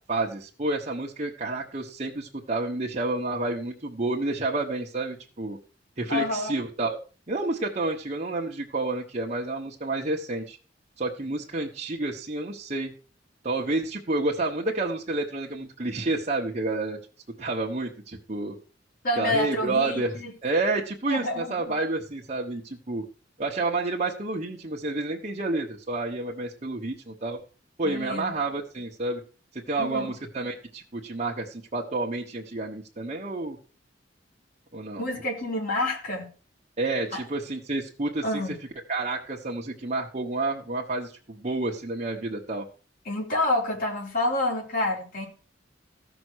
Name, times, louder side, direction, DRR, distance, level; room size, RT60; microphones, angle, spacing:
voice 1, 0.0-5.6 6.0-7.0 7.3-10.6 11.0-12.9 13.4-17.0 17.4-18.6 19.2-23.0 23.4-27.4 27.8-29.2 29.5-33.6 34.7-35.0 36.8-38.4 38.9-42.6, right 2 dB, 35° right, -2 dB, 1.2 m, -29 dB
voice 2, 6.1-6.5 19.0-20.3 21.1-21.7 27.8-28.4 29.8-30.2 35.0-36.3 37.1-37.2 38.2-38.6 43.1-45.2, left 1 dB, 50° left, -1 dB, 4.1 m, -28 dB
14.5 x 6.1 x 6.3 m, 0.39 s
head